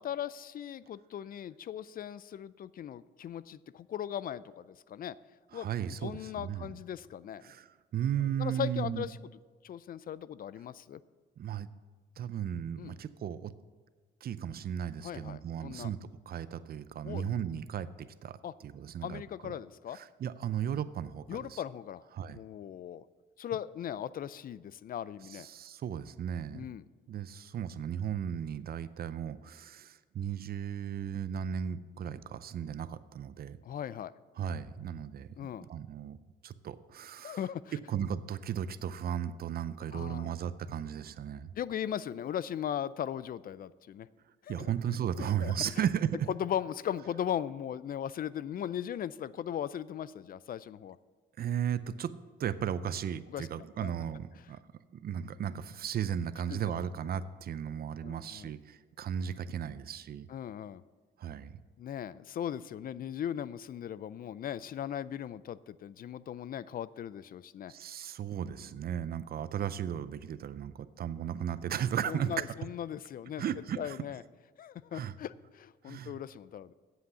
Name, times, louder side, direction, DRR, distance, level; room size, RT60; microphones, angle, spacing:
voice 1, 0.0-5.2 5.5-7.4 8.4-9.3 9.6-11.0 12.8-13.0 15.0-15.9 17.0-17.2 18.4-18.5 19.0-20.0 21.3-22.0 22.3-23.0 23.4-25.5 26.5-26.8 33.6-34.1 35.4-35.7 37.2-37.8 39.9-40.3 41.6-44.1 44.4-44.7 45.2-45.8 46.3-51.0 53.3-53.9 56.5-56.8 58.0-58.5 60.3-60.8 61.8-67.7 72.1-73.4 73.8-74.2 74.6-76.7, left 10 dB, 45° left, 18 dB, 0.4 m, -38 dB
voice 2, 5.5-6.7 7.4-7.7 7.9-9.1 11.4-11.7 12.2-13.5 14.2-16.0 16.3-17.9 18.2-19.5 19.9-21.6 22.1-22.4 25.3-26.6 27.1-33.6 34.4-36.2 36.4-37.4 37.9-41.5 44.5-46.3 51.4-52.1 52.4-54.6 55.0-60.3 61.2-61.5 67.7-72.5 73.4-74.0 74.9-75.1 75.9-76.2, right 9 dB, 50° right, 15 dB, 0.5 m, -35 dB
8.1 x 7.8 x 6.9 m, 1.4 s
cardioid pair, 90°, 20 cm